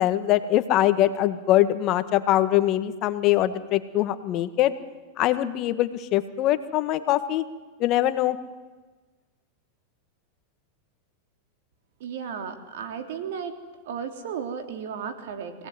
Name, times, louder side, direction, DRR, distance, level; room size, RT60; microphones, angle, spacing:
voice 1, 0.0-4.7 5.2-7.4 7.8-8.4, left 13 dB, 45° left, 11 dB, 1.6 m, -23 dB
voice 2, 12.0-13.6 13.8-15.7, right 7 dB, 70° right, 6 dB, 3.3 m, -34 dB
24.0 x 18.0 x 9.5 m, 1.3 s
hypercardioid pair, 115°, 0 cm